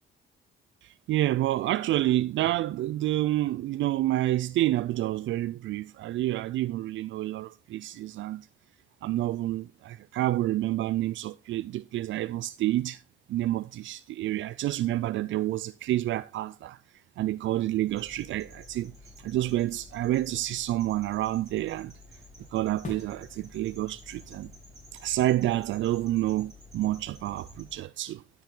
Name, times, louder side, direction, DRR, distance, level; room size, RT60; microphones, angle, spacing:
voice 1, 0.8-8.5 9.0-13.0 13.3-16.8 17.2-18.9 19.2-21.9 22.5-24.5 24.9-28.2, right 14 dB, 75° right, 0.4 m, -28 dB
sound 1, 17.9-27.8, left 2 dB, 15° right, 5.5 m, -51 dB
sound 2, 21.7-27.0, left 2 dB, 40° left, 3.9 m, -49 dB
11.5 x 6.9 x 3.9 m
cardioid pair, 90°, 20 cm